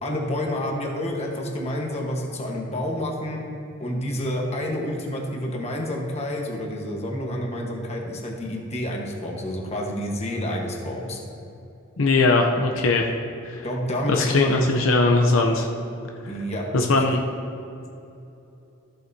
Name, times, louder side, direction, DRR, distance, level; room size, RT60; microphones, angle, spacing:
voice 1, 0.0-3.4 3.8-11.2 13.6-14.7 16.3-16.7, equal, 35° left, 0 dB, 1.2 m, -28 dB
voice 2, 12.0-13.1 13.4-13.7 14.1-15.7 16.7-17.2, left 3 dB, 80° left, 2 dB, 0.7 m, -20 dB
13.5 x 7.7 x 2.7 m, 2.8 s
head